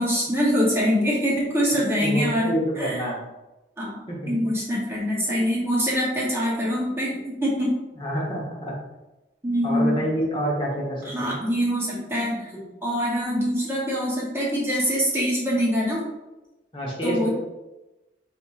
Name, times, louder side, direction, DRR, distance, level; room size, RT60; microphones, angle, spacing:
voice 1, 0.0-2.5 2.8-3.0 3.8-7.8 9.4-10.0 11.0-16.1 17.0-17.3, equal, 15° right, -5 dB, 0.8 m, -24 dB
voice 2, 2.0-3.2 4.1-4.3 8.0-8.7 9.6-11.4 16.7-17.3, equal, 30° left, -3 dB, 1.0 m, -27 dB
4.2 x 4.2 x 2.4 m, 1.0 s
head